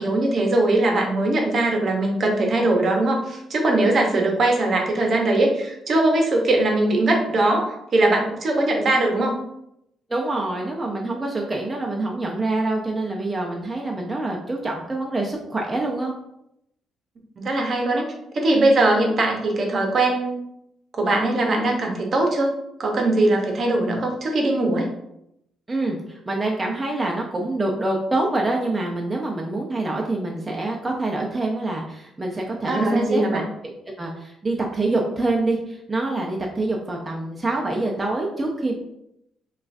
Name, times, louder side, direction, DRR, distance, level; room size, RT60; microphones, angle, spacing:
voice 1, 0.0-9.3 17.4-18.1 18.3-20.4 21.0-22.5 22.8-24.9 32.7-33.4, right 2 dB, 50° right, 1 dB, 0.9 m, -20 dB
voice 2, 10.1-16.2 25.7-33.4 34.0-38.7, right 2 dB, 20° right, -1 dB, 0.6 m, -26 dB
5.4 x 2.4 x 2.6 m, 0.80 s
cardioid pair, 90°, 0 cm